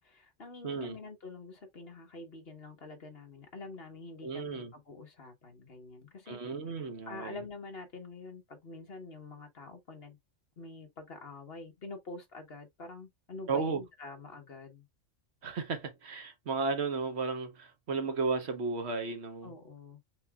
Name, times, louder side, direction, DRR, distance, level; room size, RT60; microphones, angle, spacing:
voice 1, 0.0-6.4 7.1-10.2 10.6-14.9 19.4-20.0, left 3 dB, 50° left, 1.5 m, -46 dB
voice 2, 0.6-1.0 4.2-4.7 6.3-7.4 13.5-13.8 15.4-19.5, right 4 dB, 60° right, 1.3 m, -34 dB
5.5 x 4.0 x 2.3 m
omnidirectional pair, 1.3 m